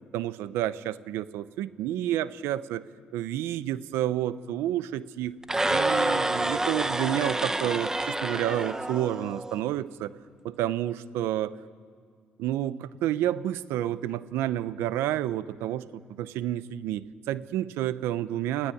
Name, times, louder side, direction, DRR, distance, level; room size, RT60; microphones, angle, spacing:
voice 1, 0.1-2.8 3.1-5.4 5.7-10.1 10.4-11.5 12.4-18.7, right 12 dB, 90° right, 15 dB, 0.8 m, -30 dB
sound 1, 5.4-9.6, right 2 dB, 15° right, 1.2 m, -28 dB
29.0 x 16.5 x 9.3 m, 2.1 s
cardioid pair, 85°, 4 cm